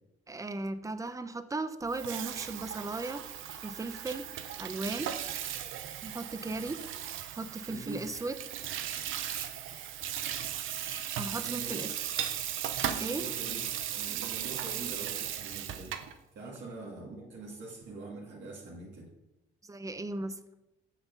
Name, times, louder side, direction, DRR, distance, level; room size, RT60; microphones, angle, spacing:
voice 1, 0.3-3.2 3.6-4.3 4.6-5.1 6.0-6.8 7.3-8.4 11.2-11.9 13.0-13.3 19.6-20.4, right 2 dB, 15° right, 12 dB, 0.7 m, -36 dB
Water tap faucet / Sink (filling or washing), 1.8-16.1, right 10 dB, 85° right, 0.8 m, -37 dB
voice 2, 7.7-8.0 11.4-11.8 12.9-16.0 16.3-19.1, right 3 dB, 65° right, -6 dB, 2.4 m, -44 dB
7.3 x 7.1 x 5.4 m, 0.93 s
cardioid pair, 90°, 20 cm